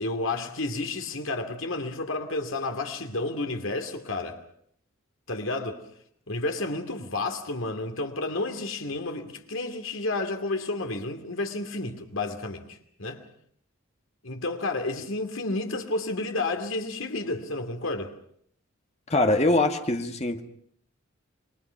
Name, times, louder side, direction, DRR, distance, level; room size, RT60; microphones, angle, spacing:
voice 1, 0.0-4.4 5.3-5.8 6.3-13.2 14.2-18.1, left 2 dB, 65° left, 2.8 m, -31 dB
voice 2, 19.1-20.4, left 2 dB, 30° left, 1.8 m, -23 dB
28.5 x 22.5 x 5.9 m
head